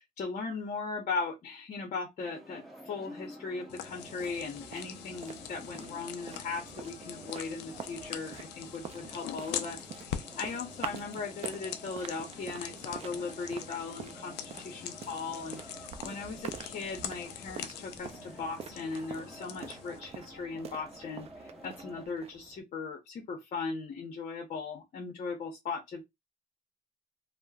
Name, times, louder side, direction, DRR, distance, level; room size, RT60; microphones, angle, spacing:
voice 1, 0.0-26.0, left 4 dB, 45° left, 0.8 m, -38 dB
sound 1, 2.2-22.1, equal, ahead, 0.9 m, -51 dB
sound 2, 3.7-20.0, left 10 dB, 85° left, 0.4 m, -44 dB
sound 3, 4.0-22.6, right 7 dB, 35° right, 0.4 m, -47 dB
3.0 x 2.1 x 2.3 m
cardioid pair, 110°, 17 cm